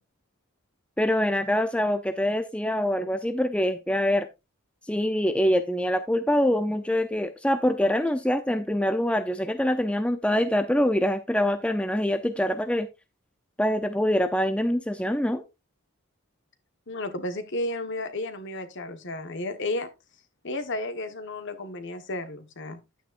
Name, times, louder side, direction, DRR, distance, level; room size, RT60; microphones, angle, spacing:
voice 1, 1.0-4.3 4.9-12.9 13.6-15.4, left 1 dB, 5° left, 0.6 m, -24 dB
voice 2, 16.9-19.9 20.4-22.8, left 2 dB, 55° left, 1.4 m, -33 dB
10.5 x 9.2 x 2.5 m
head